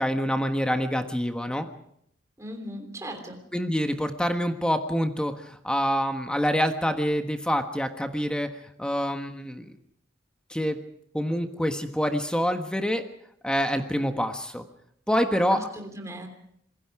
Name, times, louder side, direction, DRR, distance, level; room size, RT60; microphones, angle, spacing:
voice 1, 0.0-1.7 3.5-8.5 8.8-9.7 10.5-10.8 11.1-13.0 13.4-14.6 15.1-15.7, equal, 5° left, 5 dB, 1.4 m, -26 dB
voice 2, 2.4-3.4 15.5-16.3, right 1 dB, 15° right, 3 dB, 3.3 m, -38 dB
27.0 x 21.5 x 4.9 m, 0.71 s
head